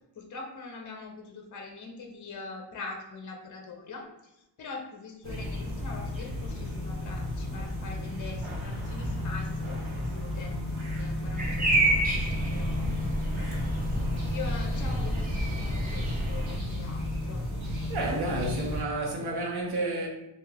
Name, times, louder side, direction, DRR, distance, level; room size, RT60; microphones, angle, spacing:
voice 1, 0.2-4.1 4.6-10.5 11.0-17.4, left 4 dB, 45° left, 0.5 m, -43 dB
sound 1, 5.2-18.8, left 1 dB, 80° right, 1.1 m, -33 dB
sound 2, 11.4-16.6, right 1 dB, 20° right, 0.5 m, -29 dB
voice 2, 17.9-20.1, right 2 dB, 60° right, 0.8 m, -30 dB
2.8 x 2.3 x 3.2 m
wide cardioid pair, 125°, 45 cm